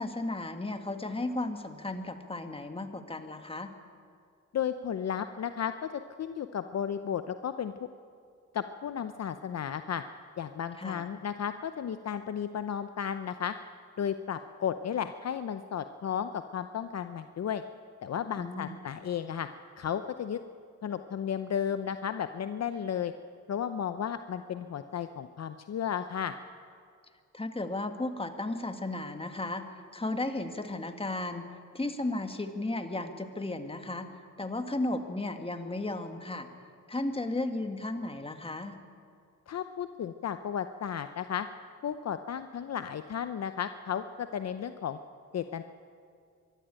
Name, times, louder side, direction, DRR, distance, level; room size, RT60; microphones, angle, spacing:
voice 1, 0.0-3.7 10.8-11.1 18.3-18.8 27.3-29.6 29.9-31.5 31.7-34.1 34.4-36.5 36.9-38.8, left 2 dB, 15° left, 6 dB, 1.9 m, -34 dB
voice 2, 4.5-5.9 6.2-7.7 8.5-10.0 10.4-13.5 14.0-17.6 18.0-19.5 19.8-20.4 20.8-23.1 23.5-26.3 39.5-41.5 41.8-45.0 45.3-45.6, left 8 dB, 50° left, 10 dB, 0.8 m, -34 dB
23.5 x 12.5 x 9.1 m, 2.2 s
cardioid pair, 75°, 32 cm